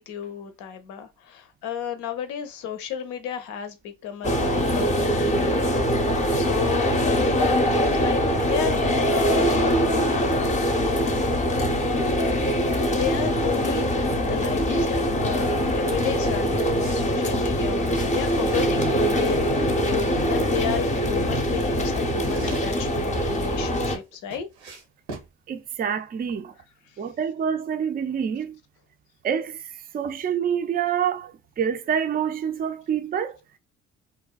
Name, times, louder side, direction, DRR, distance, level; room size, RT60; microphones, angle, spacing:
voice 1, 0.0-5.6 6.3-8.8 9.1-9.6 11.0-11.3 12.8-13.9 14.1-24.5, left 8 dB, 65° left, 0.6 m, -33 dB
sound 1, 4.2-24.0, equal, 25° left, 0.6 m, -23 dB
sound 2, 16.2-17.1 17.4-18.9 19.5-20.7 21.4-23.3 23.8-25.3, right 3 dB, 90° right, 0.8 m, -42 dB
voice 2, 25.5-26.5 27.0-28.6 29.2-29.6 29.9-33.4, right 8 dB, 30° right, 0.4 m, -27 dB
2.5 x 2.1 x 2.3 m
hypercardioid pair, 50°, 32 cm